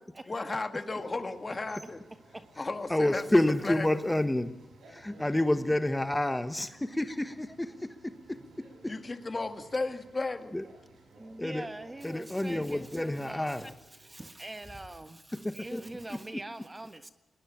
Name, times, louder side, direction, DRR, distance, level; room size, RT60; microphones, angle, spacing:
voice 1, 0.3-2.0 2.6-3.9 8.9-10.5, left 3 dB, 35° left, 2.1 m, -34 dB
Daintree Electric Boat Tour Exerpt, 0.9-16.0, right 2 dB, 90° right, 7.8 m, -57 dB
voice 2, 2.9-4.6 4.9-9.0 10.5-10.6 11.4-11.7 12.0-13.7 15.4-15.8, left 1 dB, 10° left, 1.3 m, -29 dB
voice 3, 11.2-17.1, right 2 dB, 20° right, 1.4 m, -43 dB
20.5 x 19.5 x 8.7 m
cardioid pair, 70°, 0 cm